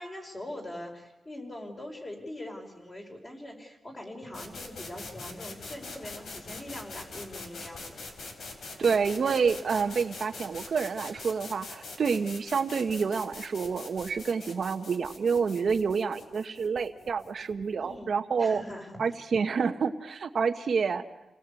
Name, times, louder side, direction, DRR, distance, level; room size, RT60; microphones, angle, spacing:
voice 1, 0.0-8.0 17.8-19.2, left 1 dB, 25° left, 2 dB, 5.0 m, -42 dB
sound 1, 4.3-18.1, left 3 dB, 70° left, 3.9 m, -44 dB
voice 2, 8.8-18.6 19.0-21.0, right 5 dB, 55° right, 7 dB, 1.1 m, -28 dB
28.5 x 19.0 x 8.3 m, 1.0 s
wide cardioid pair, 145°, 0 cm